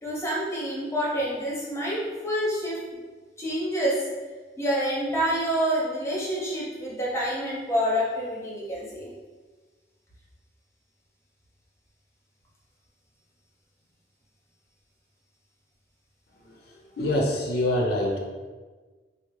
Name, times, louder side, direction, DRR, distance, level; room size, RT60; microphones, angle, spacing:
voice 1, 0.0-2.8 3.4-4.1 4.6-9.1, equal, 15° left, -5 dB, 0.7 m, -27 dB
voice 2, 16.4-18.2, left 1 dB, 60° left, -1 dB, 0.5 m, -26 dB
3.5 x 2.0 x 3.1 m, 1.4 s
head